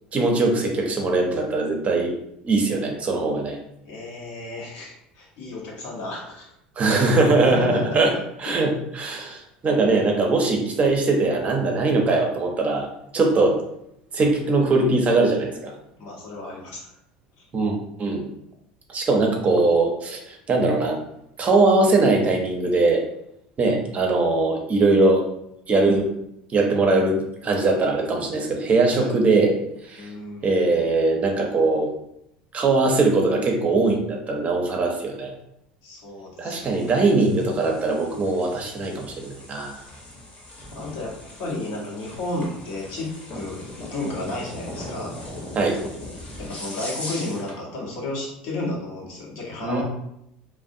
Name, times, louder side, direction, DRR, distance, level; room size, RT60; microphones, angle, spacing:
voice 1, 0.1-2.1 2.4-3.6 6.8-12.9 13.1-13.6 14.1-15.7 17.5-18.2 18.9-21.0 21.4-23.0 23.6-25.2 25.7-26.1 26.5-29.5 29.9-30.1 30.4-31.9 32.5-35.3 36.4-39.8 45.6-45.8 49.6-49.8, right 3 dB, 35° right, 2 dB, 0.6 m, -21 dB
voice 2, 3.8-6.5 7.4-8.5 15.9-16.9 17.4-17.5 29.0-29.1 30.0-31.0 35.8-37.7 40.7-43.6 43.9-45.1 46.4-49.8, left 2 dB, 65° left, -3 dB, 0.9 m, -33 dB
sound 1, 36.6-47.6, left 1 dB, 35° left, 0.9 m, -39 dB
2.4 x 2.0 x 2.5 m, 0.78 s
hypercardioid pair, 80°, 4 cm